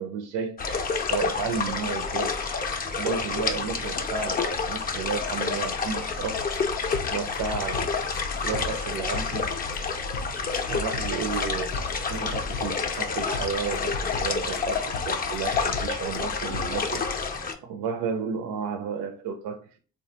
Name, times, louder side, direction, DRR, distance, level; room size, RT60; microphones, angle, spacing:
voice 1, 0.0-2.6 3.0-6.6 7.1-7.9 8.4-9.5 10.7-11.8 12.1-17.0 17.6-19.8, right 6 dB, 70° right, 0.5 m, -32 dB
sound 1, 0.6-17.5, left 5 dB, 30° left, 0.4 m, -29 dB
sound 2, 6.2-17.1, left 4 dB, 85° left, 0.5 m, -38 dB
3.4 x 2.1 x 2.8 m
supercardioid pair, 75°, 32 cm